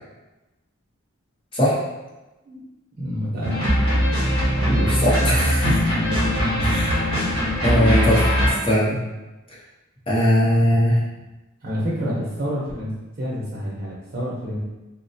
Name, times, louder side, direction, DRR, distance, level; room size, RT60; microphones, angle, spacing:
voice 1, 3.0-3.7 6.5-7.1 11.6-12.9 13.2-14.6, equal, 45° right, -6 dB, 0.7 m, -28 dB
sound 1, 3.4-8.5, equal, 85° left, 1.1 m, -21 dB
voice 2, 4.6-5.8 6.6-6.9 7.6-9.0 10.1-11.0, equal, 25° left, -7 dB, 0.7 m, -20 dB
3.9 x 2.1 x 2.7 m, 1.1 s
head